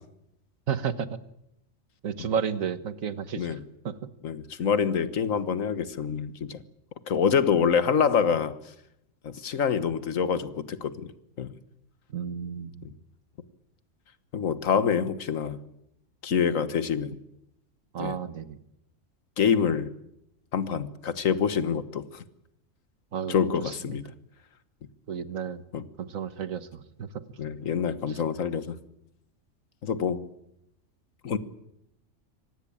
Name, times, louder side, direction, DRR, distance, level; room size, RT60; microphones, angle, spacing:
voice 1, 0.7-1.1 2.0-3.5 3.8-3.9 12.1-12.8 17.9-18.6 23.1-23.4 23.7-23.8 25.1-25.6 26.0-27.1 28.1-28.2, right 7 dB, 90° right, 13 dB, 1.7 m, -32 dB
voice 2, 4.2-6.6 7.1-8.6 9.2-11.1 11.4-11.5 14.3-15.6 16.2-17.2 18.0-18.2 19.4-19.9 20.5-22.2 23.3-24.0 25.7-25.8 27.4-28.8 29.8-30.2 31.2-31.4, left 7 dB, 75° left, 13 dB, 1.7 m, -26 dB
25.5 x 18.5 x 8.7 m, 0.80 s
omnidirectional pair, 1.4 m